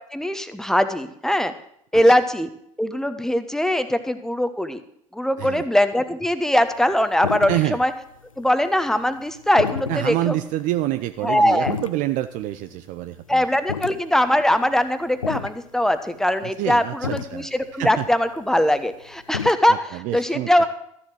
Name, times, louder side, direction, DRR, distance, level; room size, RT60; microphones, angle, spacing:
voice 1, 0.1-1.5 1.9-2.5 2.8-4.8 5.1-7.9 8.4-10.3 11.2-11.7 13.3-19.7 20.1-20.7, left 1 dB, 5° left, 10 dB, 1.2 m, -21 dB
sound 1, 6.9-7.0 7.2-7.8 8.1-8.7 9.0-12.7 13.1-13.2 13.6-14.9 15.2-15.6 16.2-16.3 16.7-16.8 17.0-19.5, left 6 dB, 85° left, 0.4 m, -30 dB
voice 2, 7.5-7.8 9.9-13.4 16.4-18.1 19.7-20.7, right 15 dB, 50° right, 11 dB, 0.6 m, -27 dB
13.5 x 7.6 x 7.7 m, 0.72 s
figure-of-eight pair, 60°, 17 cm